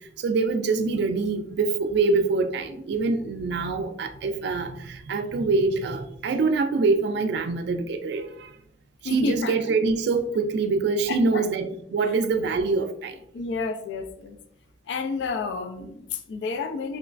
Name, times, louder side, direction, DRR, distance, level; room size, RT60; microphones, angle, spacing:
voice 1, 0.2-8.3 9.0-13.1, right 4 dB, 65° right, 7 dB, 0.3 m, -24 dB
voice 2, 9.0-9.5 11.1-11.5 13.3-14.4 14.9-17.0, left 4 dB, 70° left, 7 dB, 0.3 m, -30 dB
3.1 x 3.0 x 2.4 m, 0.73 s
head